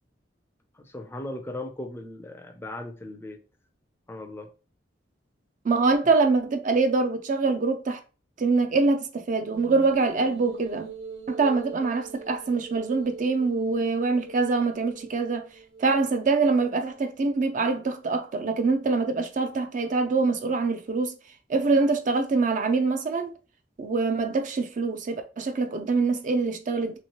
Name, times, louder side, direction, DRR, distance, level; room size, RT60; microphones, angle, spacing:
voice 1, 0.8-3.4 4.1-4.5, left 1 dB, 15° left, 0.4 m, -37 dB
voice 2, 5.6-8.0 8.4-10.9 11.3-15.5 15.8-21.1 21.5-23.3 23.8-27.0, right 3 dB, 45° right, 0.4 m, -24 dB
sound 1, 9.5-16.9, right 3 dB, 80° right, 0.7 m, -43 dB
3.1 x 3.0 x 2.9 m
head